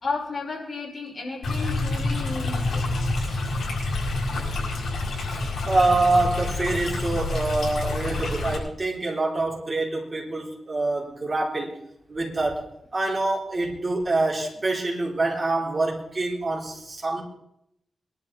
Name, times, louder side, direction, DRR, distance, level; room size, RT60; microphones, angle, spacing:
voice 1, 0.0-2.8, left 3 dB, 45° left, -2 dB, 5.5 m, -32 dB
Stream, 1.4-8.6, left 2 dB, 70° left, 7.1 m, -27 dB
voice 2, 5.3-11.8 12.1-17.2, right 2 dB, 30° right, -2 dB, 4.1 m, -26 dB
22.0 x 12.0 x 4.4 m, 0.78 s
wide cardioid pair, 120°, 0 cm